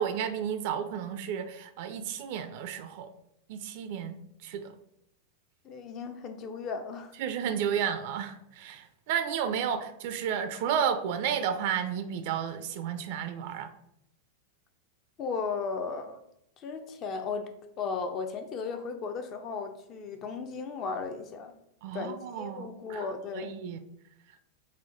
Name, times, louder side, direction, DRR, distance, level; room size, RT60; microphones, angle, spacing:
voice 1, 0.0-3.1 3.5-4.7 7.2-13.7 21.8-23.0 23.3-23.8, right 8 dB, 55° right, 9 dB, 0.3 m, -32 dB
voice 2, 5.6-7.1 15.2-16.2 16.6-17.5 17.8-21.6 21.9-23.6, left 5 dB, 40° left, 7 dB, 0.4 m, -35 dB
4.2 x 2.1 x 3.8 m, 0.76 s
hypercardioid pair, 95°, 0 cm